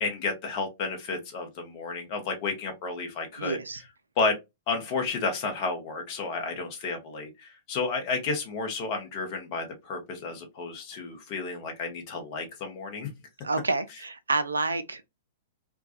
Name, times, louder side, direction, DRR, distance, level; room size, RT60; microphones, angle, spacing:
voice 1, 0.0-3.6 4.2-4.4 4.7-13.1, left 4 dB, 40° left, 0.8 m, -31 dB
voice 2, 3.4-3.8 13.4-15.1, right 3 dB, 75° right, 0.3 m, -29 dB
2.2 x 2.2 x 2.5 m
figure-of-eight pair, 105°, 0 cm